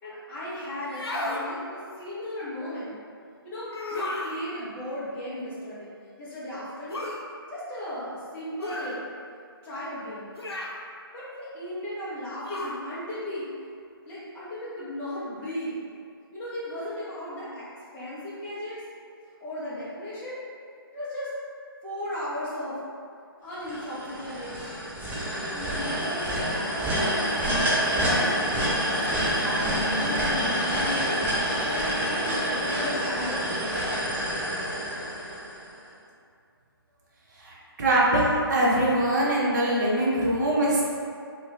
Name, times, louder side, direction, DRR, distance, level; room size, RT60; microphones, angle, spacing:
voice 1, 0.0-3.0 3.4-5.9 6.2-7.1 7.5-9.1 9.6-10.3 11.1-13.5 14.0-15.8 16.3-17.7 17.9-18.8 19.4-20.4 20.9-21.3 21.8-22.8 23.4-24.9 25.5-28.4 28.8-31.3 31.6-34.3, left 1 dB, 10° left, -10 dB, 0.8 m, -36 dB
sound 1, 0.8-1.5 3.7-4.4 6.9-7.2 8.6-9.0 10.4-10.8 12.4-12.8, left 2 dB, 85° left, 0.6 m, -33 dB
sound 2, 23.6-35.7, equal, 10° right, 0.5 m, -27 dB
voice 2, 37.4-40.8, right 1 dB, 45° right, -5 dB, 0.9 m, -23 dB
3.0 x 2.9 x 3.2 m, 2.3 s
figure-of-eight pair, 150°, 13 cm